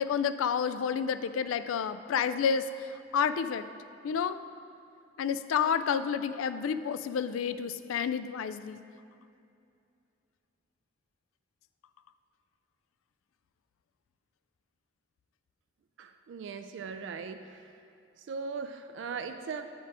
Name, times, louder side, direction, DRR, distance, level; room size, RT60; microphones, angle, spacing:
voice 1, 0.0-3.7 4.0-4.4 5.2-8.8, left 7 dB, 90° left, 13 dB, 0.3 m, -30 dB
voice 2, 16.0-17.7 18.2-19.7, right 5 dB, 65° right, 8 dB, 0.3 m, -39 dB
9.0 x 4.4 x 4.8 m, 2.6 s
head